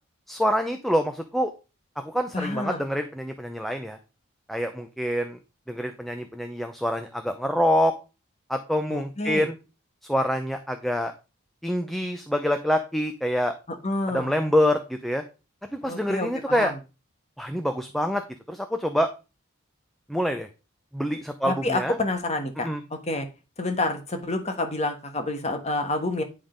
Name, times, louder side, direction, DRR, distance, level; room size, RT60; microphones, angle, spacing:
voice 1, 0.3-1.5 2.0-4.0 4.5-5.4 5.7-7.9 8.5-9.6 10.0-11.1 11.6-13.5 14.1-15.2 15.7-16.7 17.4-18.2 18.5-19.1 20.1-20.5 20.9-22.0 22.6-22.8, equal, ahead, 6 dB, 0.6 m, -26 dB
voice 2, 2.3-2.8 8.9-9.5 13.8-14.3 15.8-16.7 21.5-22.7 23.1-23.3 23.6-26.2, left 2 dB, 30° left, 5 dB, 1.3 m, -28 dB
10.5 x 3.7 x 5.1 m, 0.30 s
head